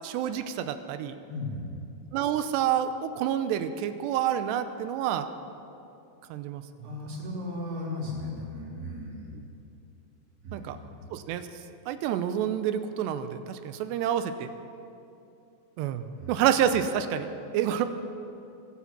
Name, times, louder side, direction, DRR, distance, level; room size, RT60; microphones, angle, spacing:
voice 1, 0.0-1.2 2.1-5.3 6.3-6.6 10.5-10.8 11.1-11.5 11.9-14.5 15.8-17.3 17.5-17.9, right 10 dB, 90° right, 10 dB, 2.9 m, -28 dB
voice 2, 1.3-1.8 6.8-9.4 10.4-10.9 16.2-16.4, left 2 dB, 65° right, -4 dB, 5.3 m, -36 dB
22.5 x 8.5 x 7.5 m, 2.7 s
omnidirectional pair, 4.9 m